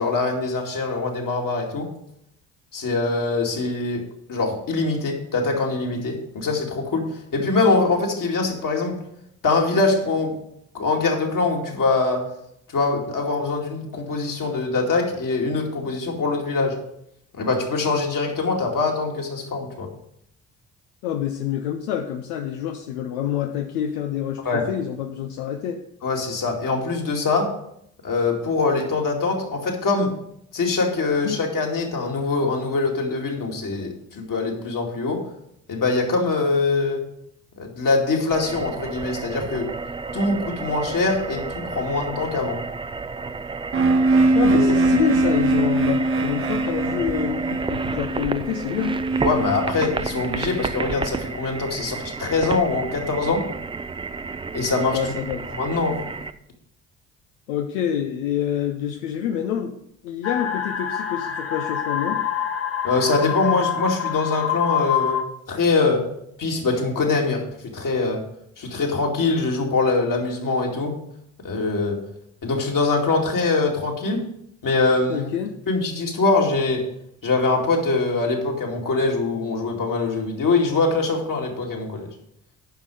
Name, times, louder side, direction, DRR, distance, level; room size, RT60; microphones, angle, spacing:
voice 1, 0.0-1.9 2.7-4.0 4.3-9.0 9.4-10.3 10.7-12.3 12.7-16.8 17.3-19.9 24.4-24.6 26.0-27.5 28.0-30.1 30.5-35.2 35.7-37.0 37.6-39.7 40.1-42.6 44.5-44.7 49.2-53.4 54.5-55.0 55.5-56.0 62.8-65.2 65.5-66.1 66.4-67.4 67.7-68.2 68.6-71.0 71.4-72.0 72.4-74.2 74.6-75.3 75.7-76.8 77.2-82.1, left 3 dB, 45° left, 0 dB, 2.4 m, -23 dB
voice 2, 21.0-25.8 31.2-31.4 44.3-49.0 54.9-55.4 57.5-59.8 60.0-62.2 75.1-75.6, left 9 dB, 80° left, 5 dB, 0.7 m, -27 dB
sound 1, 38.3-56.3, right 4 dB, 15° right, 0.4 m, -31 dB
sound 2, 43.7-51.5, right 2 dB, 30° right, 1.1 m, -22 dB
sound 3, 60.2-65.2, left 9 dB, 30° left, 1.2 m, -26 dB
9.3 x 5.7 x 4.9 m, 0.75 s
hypercardioid pair, 50°, 44 cm